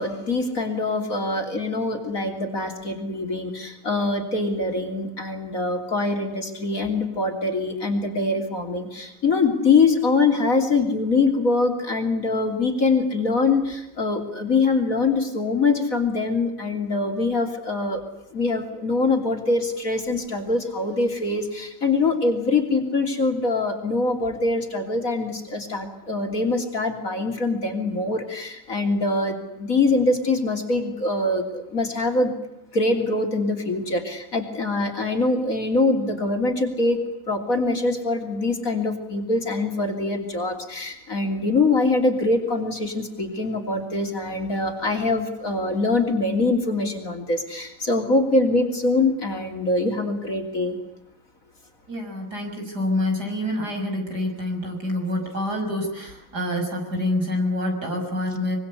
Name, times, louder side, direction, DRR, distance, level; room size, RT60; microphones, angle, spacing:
voice 1, 0.0-18.0 18.3-32.4 32.7-37.0 37.3-50.8, left 3 dB, 45° left, 4 dB, 3.6 m, -23 dB
voice 2, 51.9-58.6, left 1 dB, 55° right, 3 dB, 6.8 m, -27 dB
25.0 x 23.5 x 8.4 m, 0.86 s
omnidirectional pair, 2.1 m